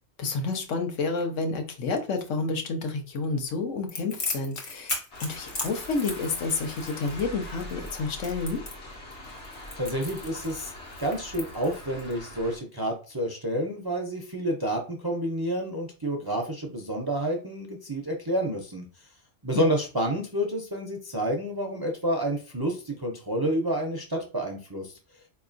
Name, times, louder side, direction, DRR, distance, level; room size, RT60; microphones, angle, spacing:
voice 1, 0.2-8.6 19.5-19.7, left 4 dB, 85° left, 1.2 m, -30 dB
Crackle, 3.9-12.1, left 2 dB, 50° left, 1.3 m, -37 dB
sound 1, 5.1-12.6, left 1 dB, 70° left, 1.3 m, -42 dB
voice 2, 9.8-10.7 11.0-18.9 19.4-24.9, right 1 dB, 35° right, 0.4 m, -29 dB
4.4 x 2.9 x 2.5 m
omnidirectional pair, 1.2 m